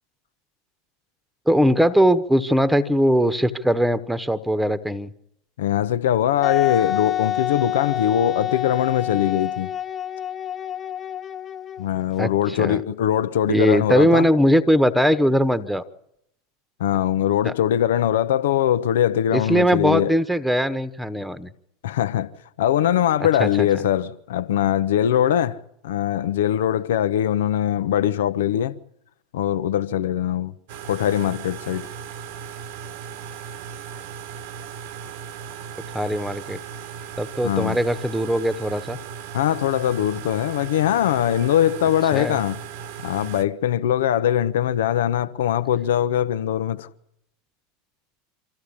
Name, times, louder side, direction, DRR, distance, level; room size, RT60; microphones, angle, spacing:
voice 1, 1.5-5.1 12.2-12.8 13.5-15.8 17.4-17.5 19.3-21.5 23.4-23.7 35.9-36.6 37.2-39.0 42.1-42.4, equal, 5° right, 1.3 m, -20 dB
voice 2, 5.6-9.7 11.8-14.3 16.8-20.1 21.8-22.3 22.6-28.8 29.3-30.5 30.9-31.9 37.4-37.8 39.3-42.6 43.0-46.9, left 11 dB, 65° left, 1.0 m, -21 dB
Wind instrument woodwind instrument, 6.4-12.0, left 10 dB, 25° left, 0.8 m, -27 dB
sound 1, 30.7-43.4, right 8 dB, 60° right, 1.3 m, -37 dB
25.5 x 14.5 x 8.6 m
figure-of-eight pair, 85°, 0 cm